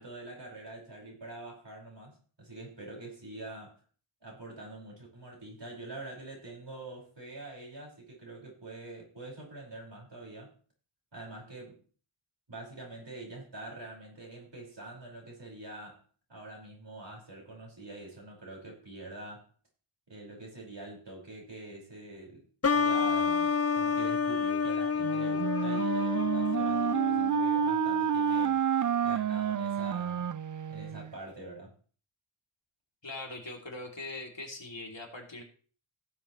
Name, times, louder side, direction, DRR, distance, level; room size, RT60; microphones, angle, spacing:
voice 1, 0.0-3.8 4.2-10.5 11.1-11.8 12.5-16.0 16.3-19.5 20.1-22.5 22.7-28.6 29.0-30.3 30.7-31.7, right 2 dB, 60° right, -2 dB, 5.5 m, -45 dB
sound 1, 22.6-28.1, left 5 dB, 30° left, 0.6 m, -29 dB
Wind instrument woodwind instrument, 25.0-31.1, right 8 dB, 40° right, 0.4 m, -29 dB
voice 2, 33.0-35.4, left 2 dB, 60° left, 1 dB, 3.1 m, -41 dB
17.0 x 7.8 x 3.2 m, 0.41 s
wide cardioid pair, 45°, 49 cm